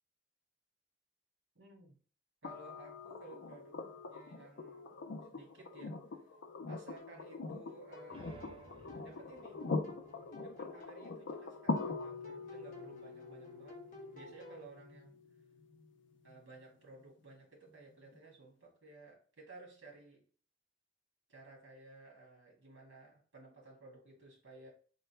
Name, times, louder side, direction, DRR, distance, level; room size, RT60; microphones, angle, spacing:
voice 1, 1.6-2.0 2.4-3.8 4.1-5.0 5.3-6.0 6.7-8.8 9.0-9.7 10.4-13.8 14.1-15.2 16.2-20.3 21.3-24.7, right 3 dB, 90° right, -1 dB, 1.8 m, -56 dB
sound 1, 2.4-16.4 18.1-18.2, left 3 dB, 70° left, 0.5 m, -43 dB
sound 2, 7.0-14.6, left 1 dB, 40° left, 0.7 m, -55 dB
sound 3, 7.8-11.3, right 2 dB, 25° right, 0.5 m, -59 dB
3.8 x 2.2 x 4.3 m, 0.42 s
head